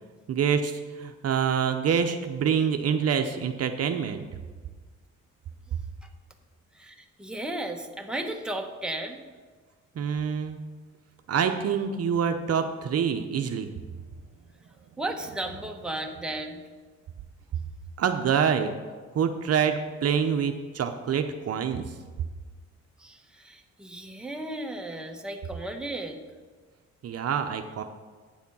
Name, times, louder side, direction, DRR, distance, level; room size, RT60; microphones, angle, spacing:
voice 1, 0.3-4.2 10.0-10.6 11.3-13.7 18.0-18.7 19.1-21.9 27.0-27.8, right 7 dB, 55° right, 6 dB, 0.7 m, -26 dB
voice 2, 6.7-9.2 15.0-16.6 23.0-26.2, right 1 dB, 5° right, 2 dB, 1.1 m, -35 dB
9.2 x 7.2 x 5.4 m, 1.4 s
cardioid pair, 90°, 30 cm